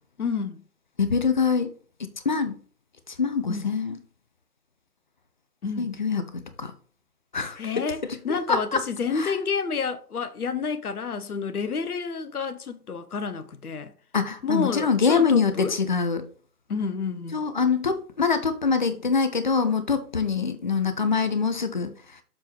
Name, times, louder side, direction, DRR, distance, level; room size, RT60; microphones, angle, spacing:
voice 1, 0.2-0.6 3.5-3.7 5.6-5.9 7.6-13.9 14.4-15.8 16.7-17.5, left 5 dB, 70° left, 1.0 m, -29 dB
voice 2, 1.0-1.7 2.0-2.5 3.2-4.0 5.8-6.3 6.6-6.7 7.3-7.6 8.3-8.8 9.2-9.3 14.1-16.2 17.3-21.9, left 5 dB, 30° left, 0.6 m, -24 dB
7.3 x 3.4 x 5.9 m
figure-of-eight pair, 140°, 47 cm